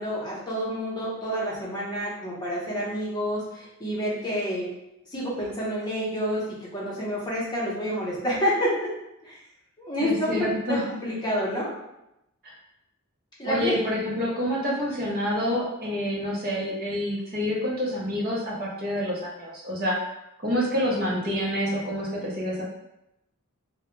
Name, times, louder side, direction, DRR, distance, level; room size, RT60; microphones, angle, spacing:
voice 1, 0.0-4.7 5.1-8.9 9.2-9.4 9.8-11.7 13.4-13.7 15.0-15.1, equal, 20° left, -7 dB, 0.8 m, -28 dB
voice 2, 10.0-10.9 12.4-12.5 13.5-20.0 20.4-22.6, equal, 45° right, -5 dB, 0.7 m, -27 dB
2.2 x 2.1 x 3.0 m, 0.88 s
head